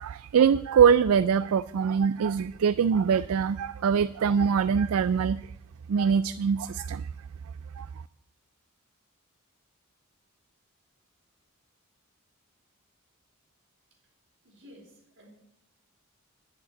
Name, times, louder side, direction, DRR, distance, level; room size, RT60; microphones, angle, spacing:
voice 1, 0.0-5.5 5.9-7.1 7.8-7.9, right 7 dB, 75° right, 16 dB, 0.4 m, -23 dB
voice 2, 14.4-15.3, left 1 dB, 60° right, 0 dB, 4.1 m, -53 dB
11.0 x 6.8 x 9.1 m, 0.82 s
head